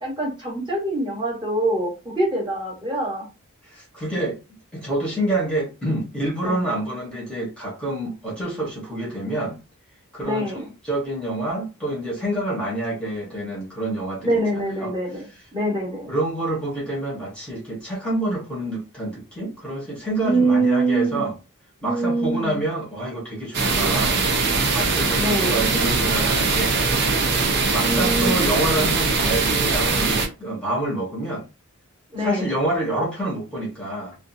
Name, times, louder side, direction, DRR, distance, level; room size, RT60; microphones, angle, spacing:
voice 1, 0.0-3.3 6.4-6.7 10.2-10.7 14.2-15.3 15.5-16.1 20.2-21.3 21.8-22.6 25.1-25.6 27.8-28.5 32.1-32.5, right 2 dB, 20° right, 1.1 m, -24 dB
voice 2, 3.6-4.4 4.7-9.6 10.1-15.2 16.1-21.4 21.8-24.2 24.7-26.8 27.7-31.4 32.2-34.2, right 1 dB, 5° left, 0.9 m, -27 dB
sound 1, 23.5-30.3, right 4 dB, 50° right, 0.6 m, -21 dB
2.5 x 2.4 x 2.6 m
head